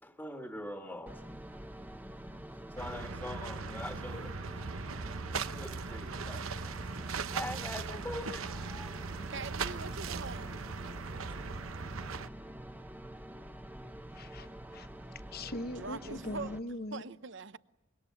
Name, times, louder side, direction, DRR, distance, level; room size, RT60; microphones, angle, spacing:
voice 1, 0.0-1.2 2.8-4.5 4.9-5.0 5.3-6.9 7.3-9.3 10.9-11.3, left 1 dB, 10° left, 1.6 m, -44 dB
sound 1, 1.1-16.6, right 1 dB, 10° right, 1.0 m, -47 dB
sound 2, 2.8-12.3, right 5 dB, 90° right, 0.9 m, -39 dB
Motor vehicle (road) / Siren, 3.5-12.4 12.8-13.2, left 3 dB, 85° left, 5.7 m, -66 dB
voice 2, 9.3-10.6 15.7-17.6, right 4 dB, 60° right, 0.8 m, -43 dB
voice 3, 14.1-17.0, left 1 dB, 50° left, 1.0 m, -41 dB
25.5 x 23.0 x 8.5 m
head